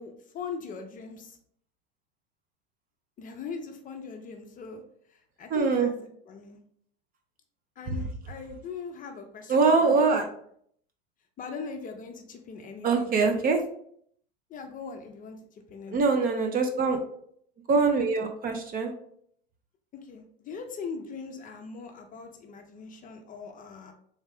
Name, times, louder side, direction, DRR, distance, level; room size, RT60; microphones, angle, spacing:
voice 1, 0.0-1.4 3.2-4.8 5.1-6.6 7.8-10.3 11.4-13.3 14.5-16.1 19.9-23.9, left 5 dB, 25° left, 4 dB, 0.6 m, -41 dB
voice 2, 5.5-5.9 9.5-10.3 12.8-13.6 15.9-17.0 17.7-18.9, right 4 dB, 30° right, 5 dB, 0.6 m, -23 dB
3.5 x 3.2 x 3.4 m, 0.65 s
hypercardioid pair, 90°, 31 cm